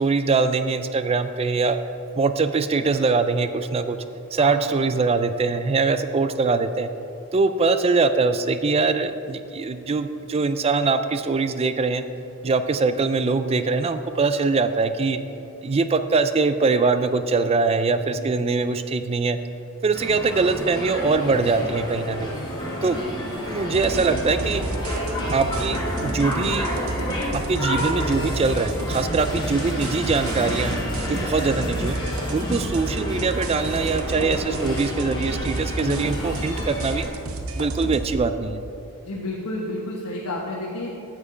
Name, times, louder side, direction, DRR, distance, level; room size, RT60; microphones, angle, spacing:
voice 1, 0.0-1.8 2.2-4.0 4.3-6.9 7.3-12.0 12.4-15.2 15.6-19.4 19.8-22.3 22.8-23.0 23.5-24.6 25.3-26.7 27.3-30.8 31.0-32.0 32.3-37.0 37.6-38.6, right 4 dB, 25° right, 10 dB, 0.4 m, -22 dB
voice 2, 17.9-18.4 35.6-36.1 39.0-40.9, left 1 dB, 85° left, -4 dB, 1.2 m, -32 dB
sound 1, 19.9-37.1, left 1 dB, 20° left, 1.7 m, -30 dB
sound 2, 23.7-38.2, right 2 dB, 70° right, 0.8 m, -31 dB
8.4 x 7.3 x 5.0 m, 2.7 s
head